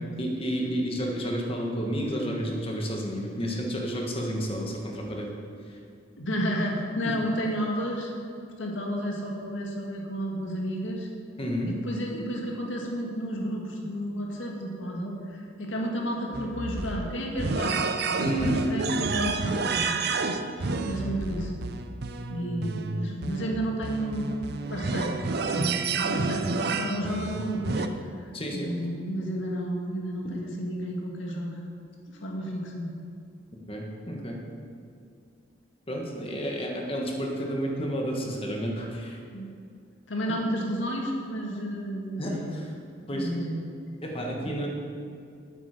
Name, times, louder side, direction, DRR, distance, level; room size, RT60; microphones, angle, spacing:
voice 1, 0.2-5.3 5.7-5.8 11.4-11.7 18.2-18.6 28.3-28.7 33.7-34.4 35.9-39.2 42.2-42.7 43.1-43.3 44.0-44.7, equal, 30° left, 0 dB, 1.7 m, -31 dB
voice 2, 6.2-8.1 8.6-11.1 11.7-17.8 18.1-20.0 20.6-21.5 22.3-24.3 24.7-25.2 25.5-27.8 28.2-31.5 32.1-32.9 39.3-39.5 40.1-42.5 43.1-43.6 44.4-44.6, equal, 75° left, 0 dB, 1.9 m, -32 dB
sound 1, 16.3-27.9, right 4 dB, 55° right, 0.6 m, -30 dB
12.0 x 9.0 x 5.0 m, 2.4 s
head